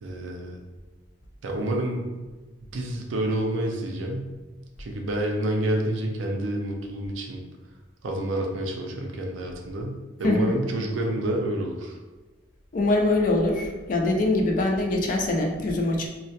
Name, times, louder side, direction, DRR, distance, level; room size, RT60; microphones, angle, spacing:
voice 1, 0.0-0.6 1.4-2.1 2.7-4.3 4.8-7.4 8.0-12.0, right 1 dB, 80° right, 1 dB, 0.4 m, -28 dB
voice 2, 10.2-10.5 12.7-16.1, left 2 dB, 45° left, 1 dB, 0.3 m, -23 dB
2.2 x 2.1 x 2.7 m, 1.2 s
head